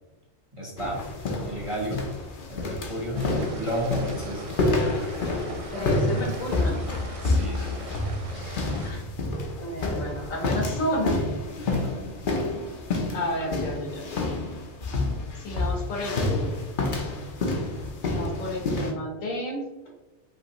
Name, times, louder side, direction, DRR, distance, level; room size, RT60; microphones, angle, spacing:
voice 1, 0.5-2.1 2.5-4.6 7.2-8.0 8.3-8.6 11.6-12.1, left 1 dB, 30° right, -2 dB, 0.8 m, -32 dB
sound 1, 0.8-18.9, left 2 dB, 50° left, 0.7 m, -29 dB
voice 2, 3.1-3.5 5.7-6.8 8.8-9.0 9.6-11.2 13.1-14.1 15.3-16.6 18.1-19.6, equal, 70° left, 0 dB, 1.4 m, -31 dB
sound 2, 3.1-8.9, right 1 dB, 60° right, 0.3 m, -41 dB
5.5 x 3.0 x 2.9 m, 1.1 s
omnidirectional pair, 1.4 m